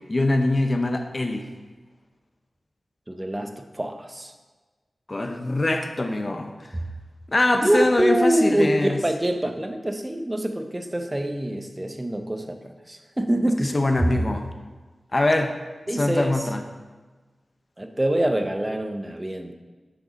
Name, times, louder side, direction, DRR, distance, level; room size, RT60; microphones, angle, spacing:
voice 1, 0.1-1.4 5.1-6.5 7.3-9.0 13.6-14.5 15.1-15.5 15.9-16.6, left 2 dB, 40° left, 5 dB, 0.7 m, -23 dB
voice 2, 3.1-4.3 6.7-6.8 7.6-14.1 15.9-16.5 17.8-19.5, right 1 dB, 20° right, 6 dB, 0.6 m, -25 dB
6.1 x 5.0 x 4.0 m, 1.3 s
cardioid pair, 55°, 0 cm